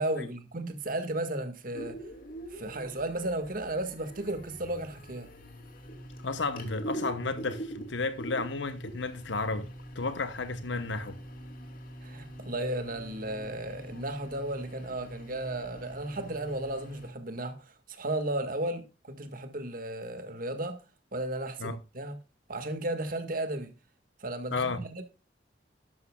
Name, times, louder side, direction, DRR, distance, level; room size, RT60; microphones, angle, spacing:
voice 1, 0.0-2.1 2.5-5.3 12.0-20.8 21.1-22.2 22.5-23.7 24.2-25.0, right 1 dB, 50° right, 1.8 m, -34 dB
sound 1, 1.7-17.1, right 1 dB, 50° left, 2.9 m, -44 dB
voice 2, 6.2-9.7 9.9-11.2 21.6-21.8 24.5-24.8, left 3 dB, 80° left, 1.0 m, -32 dB
12.5 x 11.5 x 2.3 m
head